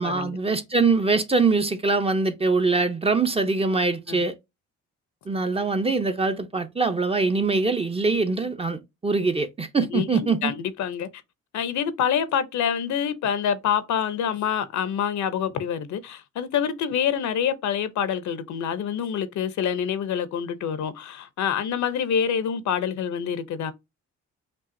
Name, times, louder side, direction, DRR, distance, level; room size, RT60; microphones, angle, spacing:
voice 1, 0.0-4.3 5.3-10.5, right 3 dB, 20° right, 0.6 m, -23 dB
voice 2, 9.9-11.1 11.5-23.7, left 8 dB, 70° left, 0.7 m, -26 dB
5.4 x 2.4 x 2.6 m
cardioid pair, 90°, 30 cm